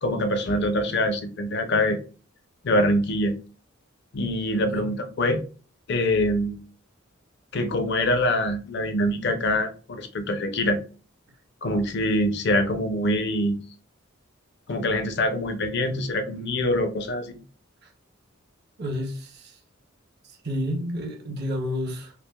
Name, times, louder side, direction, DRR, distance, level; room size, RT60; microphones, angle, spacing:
voice 1, 0.0-2.0 2.6-3.3 4.1-5.4 5.9-6.6 7.5-10.8 11.6-13.6 14.7-17.3, left 1 dB, 55° left, 0.5 m, -24 dB
voice 2, 4.5-4.9 17.8-17.9 18.8-19.6 20.2-22.1, left 1 dB, 55° right, 0.8 m, -31 dB
5.7 x 2.0 x 2.2 m
head